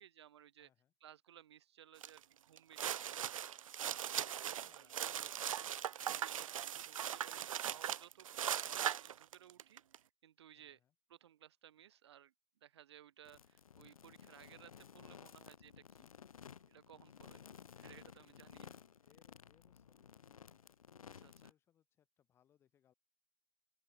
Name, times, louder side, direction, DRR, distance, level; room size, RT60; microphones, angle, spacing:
voice 1, 0.0-0.7 1.0-4.4 4.7-5.5 6.1-10.8 11.1-12.3 12.6-16.1 16.7-17.5 17.8-18.8 21.2-21.3, right 10 dB, 50° right, 1.9 m, -60 dB
voice 2, 0.6-0.9 4.5-6.1 10.5-10.9 16.9-17.8 19.0-20.8 21.1-22.9, left 10 dB, 15° left, 5.5 m, -75 dB
sound 1, 2.0-2.2 2.6-10.0, right 10 dB, 65° right, 0.5 m, -39 dB
sound 2, 13.2-21.5, left 7 dB, 75° left, 2.3 m, -56 dB
open air
hypercardioid pair, 160°, 18 cm